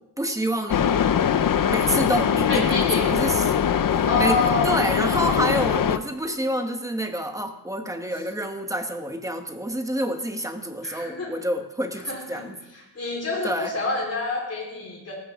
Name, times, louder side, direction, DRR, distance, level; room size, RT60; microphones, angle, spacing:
voice 1, 0.2-0.8 1.7-3.5 3.9-4.4 4.6-12.6 13.4-13.7, right 1 dB, 10° right, 5 dB, 1.1 m, -28 dB
sound 1, 0.7-6.0, left 8 dB, 55° left, 0.6 m, -22 dB
voice 2, 2.5-3.1 4.1-4.6 5.1-5.4 10.8-11.3 12.1-12.5 13.0-15.1, left 3 dB, 40° left, -2 dB, 3.8 m, -27 dB
18.5 x 14.5 x 3.6 m, 0.94 s
wide cardioid pair, 170°, 40 cm